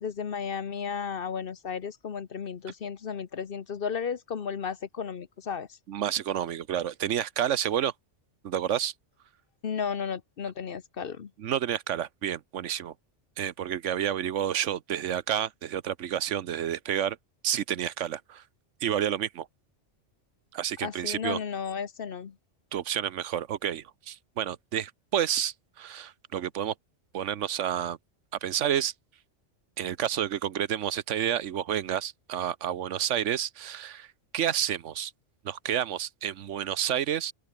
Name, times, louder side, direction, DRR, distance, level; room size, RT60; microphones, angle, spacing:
voice 1, 0.0-5.7 9.6-11.3 20.8-22.3, left 6 dB, 50° left, 1.1 m, -34 dB
voice 2, 5.9-7.9 8.4-8.9 11.4-12.9 13.4-17.2 17.4-18.4 18.8-19.5 20.5-21.4 22.7-26.7 27.1-28.0 28.4-28.9 29.8-34.1 34.3-35.1 35.4-37.3, right 10 dB, 80° right, 1.1 m, -30 dB
open air
omnidirectional pair, 1.2 m